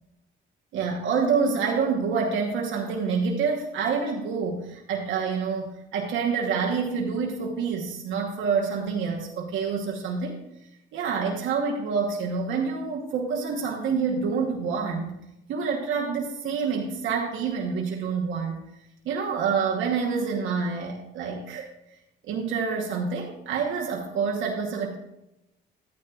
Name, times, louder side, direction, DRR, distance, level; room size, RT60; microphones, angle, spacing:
voice 1, 0.7-10.4 10.9-15.1 15.5-18.6 19.0-21.7 22.2-25.0, right 5 dB, 85° right, -1 dB, 1.1 m, -27 dB
12.5 x 9.7 x 2.4 m, 0.89 s
cardioid pair, 90°, 20 cm